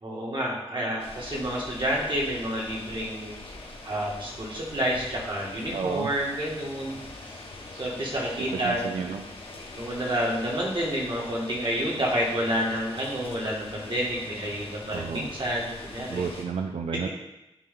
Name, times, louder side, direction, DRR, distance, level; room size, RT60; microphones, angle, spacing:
voice 1, 0.0-3.4 3.8-7.0 7.7-8.9 9.7-16.3, equal, 50° right, -4 dB, 1.8 m, -29 dB
sound 1, 1.0-16.4, left 2 dB, 65° left, 1.1 m, -43 dB
voice 2, 5.7-6.1 8.5-9.2 14.9-15.3 16.1-17.1, right 6 dB, 85° right, 4 dB, 0.4 m, -31 dB
9.2 x 3.1 x 3.7 m, 0.94 s
wide cardioid pair, 90°, 11 cm